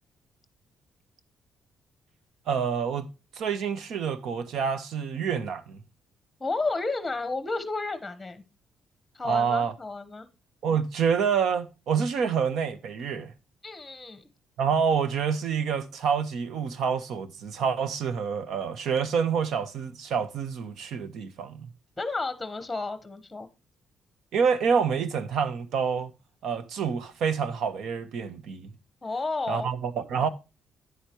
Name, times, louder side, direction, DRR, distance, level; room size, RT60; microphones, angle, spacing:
voice 1, 2.5-3.1 3.4-5.8 9.2-9.7 10.6-13.3 14.6-21.7 24.3-26.1 26.4-28.7 29.5-30.3, right 6 dB, 75° right, 1.1 m, -27 dB
voice 2, 6.4-8.4 9.1-10.3 13.6-14.3 22.0-23.5 29.0-29.7, left 3 dB, 15° left, 1.2 m, -32 dB
9.8 x 8.2 x 3.0 m
cardioid pair, 90°, 0 cm